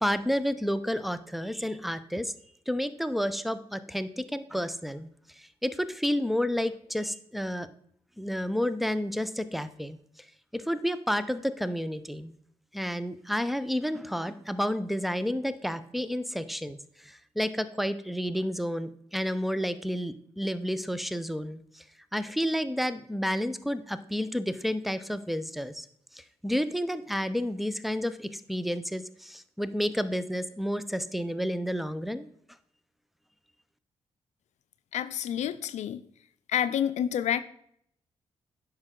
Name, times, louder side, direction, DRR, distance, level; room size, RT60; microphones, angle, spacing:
voice 1, 0.0-2.3 2.7-5.1 5.4-7.7 8.2-10.0 10.5-12.3 12.7-16.8 17.0-21.8 22.1-25.9 26.1-32.3, equal, ahead, 13 dB, 0.8 m, -30 dB
voice 2, 34.9-36.0 36.5-37.4, left 10 dB, 70° left, 13 dB, 0.5 m, -28 dB
9.6 x 6.0 x 3.8 m, 0.67 s
supercardioid pair, 50°, 12 cm